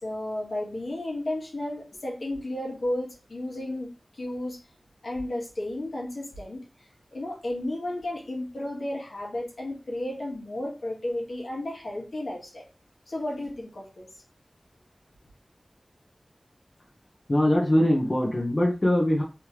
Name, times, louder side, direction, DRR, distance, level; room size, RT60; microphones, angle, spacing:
voice 1, 0.0-4.6 5.0-6.6 7.1-12.7 13.1-14.1, left 1 dB, 80° left, -2 dB, 1.5 m, -33 dB
voice 2, 17.3-19.2, left 1 dB, 40° left, -2 dB, 1.1 m, -22 dB
3.4 x 3.3 x 3.0 m, 0.32 s
wide cardioid pair, 60°, 0 cm